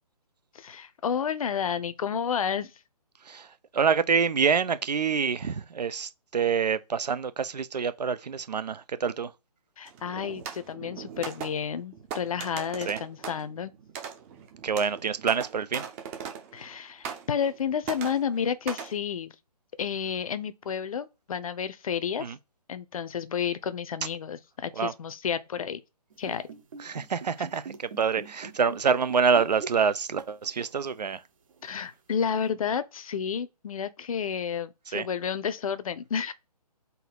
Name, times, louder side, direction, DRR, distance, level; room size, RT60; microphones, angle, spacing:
voice 1, 0.5-2.7 9.8-13.7 16.5-19.3 19.8-22.2 22.7-25.8 26.2-26.4 31.6-36.3, left 7 dB, 55° left, 0.6 m, -31 dB
voice 2, 3.3-9.3 12.9-13.0 14.6-15.8 22.2-22.4 24.8-24.9 26.8-31.2 34.9-35.1, right 6 dB, 80° right, 0.5 m, -26 dB
sound 1, 9.9-16.7 17.0-17.6 17.8-19.0, right 7 dB, 20° right, 0.6 m, -40 dB
sound 2, 26.1-30.2 30.4-30.7 31.5-31.6, right 5 dB, 55° right, 0.9 m, -42 dB
3.9 x 2.7 x 4.4 m
figure-of-eight pair, 140°, 21 cm